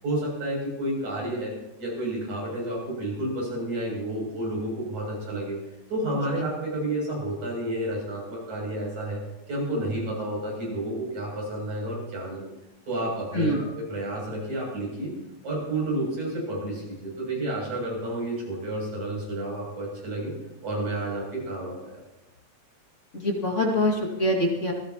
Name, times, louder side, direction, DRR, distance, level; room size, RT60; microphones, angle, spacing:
voice 1, 0.0-5.6 5.9-9.2 9.5-12.5 12.9-15.2 15.4-20.3 20.6-22.0, right 1 dB, 80° right, -3 dB, 9.1 m, -30 dB
voice 2, 23.1-24.7, left 1 dB, 25° left, -1 dB, 2.3 m, -24 dB
26.0 x 16.0 x 3.0 m, 0.93 s
omnidirectional pair, 3.3 m